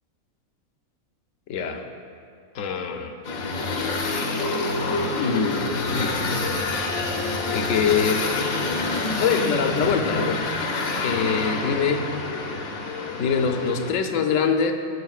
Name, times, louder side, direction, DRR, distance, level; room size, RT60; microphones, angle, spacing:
voice 1, 1.5-1.8 2.5-3.2 5.1-6.2 7.5-8.2 9.2-10.6 11.0-12.1 13.2-14.7, left 6 dB, 70° left, 6 dB, 1.0 m, -24 dB
sound 1, 3.2-13.9, left 3 dB, 85° left, 1.3 m, -27 dB
16.0 x 6.4 x 2.4 m, 2.5 s
omnidirectional pair, 1.4 m